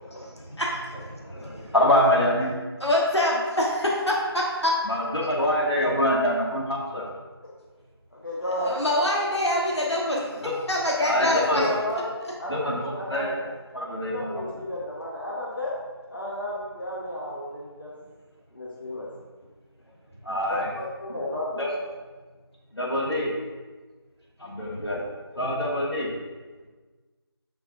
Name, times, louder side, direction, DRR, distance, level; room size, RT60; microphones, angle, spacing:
voice 1, 0.1-0.4 1.2-2.5 4.8-7.1 10.4-10.5 11.0-11.7 12.5-13.4 13.7-14.3 20.2-20.7 21.6-21.7 22.7-23.3 24.4-25.0 25.3-26.1, left 1 dB, 75° left, -4 dB, 2.1 m, -25 dB
voice 2, 2.8-4.7 8.6-10.3 10.7-11.7, left 1 dB, 90° left, -3 dB, 1.4 m, -24 dB
voice 3, 8.1-9.0 11.5-12.0 12.4-12.6 13.0-13.3 14.1-15.8 16.1-17.9 18.5-19.1 20.7-21.5, left 1 dB, 50° left, -5 dB, 1.2 m, -32 dB
8.1 x 5.8 x 2.7 m, 1.3 s
figure-of-eight pair, 175°, 14 cm